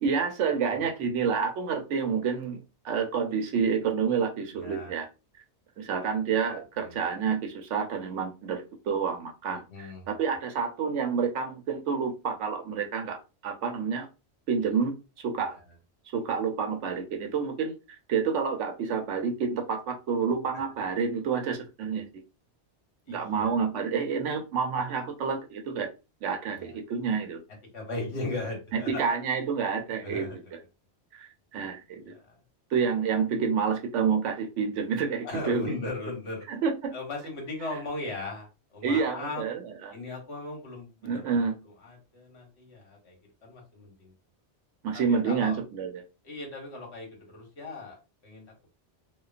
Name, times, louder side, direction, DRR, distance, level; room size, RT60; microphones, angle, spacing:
voice 1, 0.0-5.1 5.8-13.2 13.4-14.1 14.5-15.6 16.1-22.2 23.1-25.9 26.2-27.4 28.7-30.6 31.1-32.1 32.7-35.7 36.5-36.9 38.8-39.9 41.0-41.5 44.8-46.0, right 6 dB, 85° right, 1.0 m, -29 dB
voice 2, 4.5-5.0 6.8-7.0 9.7-10.2 23.1-23.6 26.5-26.7 27.7-29.2 30.0-30.4 32.0-32.4 35.2-36.5 36.9-39.5 39.9-43.2 43.4-44.1 44.9-45.6 46.2-48.4, left 2 dB, 70° left, 1.4 m, -38 dB
3.0 x 2.2 x 2.4 m
omnidirectional pair, 1.2 m